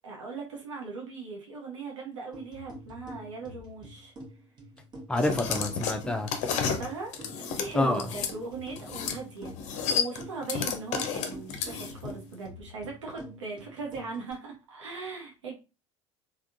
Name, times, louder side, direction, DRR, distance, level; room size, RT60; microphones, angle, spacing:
voice 1, 0.0-4.1 6.5-7.1 7.5-9.5 9.9-15.5, right 4 dB, 75° right, 0.7 m, -39 dB
sound 1, 2.3-14.3, equal, 25° right, 1.1 m, -47 dB
voice 2, 5.1-6.3 7.7-8.1, left 2 dB, 5° left, 0.5 m, -27 dB
sound 2, 5.2-8.3 8.8-9.2 9.5-12.1, left 6 dB, 50° left, 0.6 m, -31 dB
3.5 x 2.3 x 2.5 m
figure-of-eight pair, 65°, 16 cm